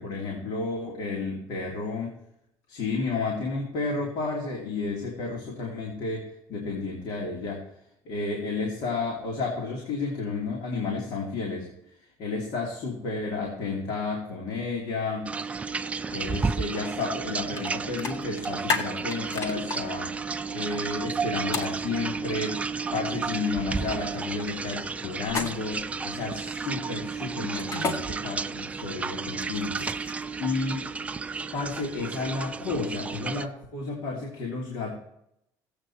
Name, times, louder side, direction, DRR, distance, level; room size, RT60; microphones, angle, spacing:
voice 1, 0.0-2.1 2.7-6.2 6.5-7.6 8.0-11.7 12.2-15.3 16.1-20.1 20.5-29.9 30.4-30.9 31.5-35.0, left 3 dB, 60° left, -2 dB, 2.8 m, -32 dB
sound 1, 15.3-33.5, right 5 dB, 15° right, 0.4 m, -32 dB
sound 2, 17.6-17.7 18.0-19.8 21.5-21.7 25.2-25.8 27.5-28.0 29.3-30.2, left 4 dB, 40° left, 1.8 m, -30 dB
15.5 x 8.7 x 4.4 m, 0.78 s
cardioid pair, 140°, 8 cm